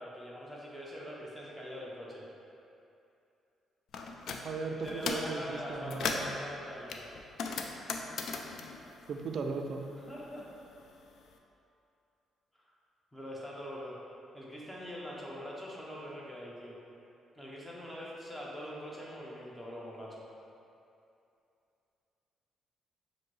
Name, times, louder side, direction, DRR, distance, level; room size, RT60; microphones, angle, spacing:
voice 1, 0.0-2.2 4.3-7.1 10.0-10.5 12.6-12.7 13.1-14.0 14.3-16.8 17.4-20.2, equal, 5° left, -5 dB, 0.9 m, -43 dB
sound 1, 3.9-4.4 4.8-5.3 5.7-6.4 6.9-9.8 10.1-11.2, left 4 dB, 70° left, 0.3 m, -37 dB
voice 2, 4.4-6.3 9.1-9.8, right 4 dB, 55° right, 4 dB, 0.3 m, -37 dB
5.5 x 2.6 x 3.1 m, 2.6 s
cardioid pair, 90°, 0 cm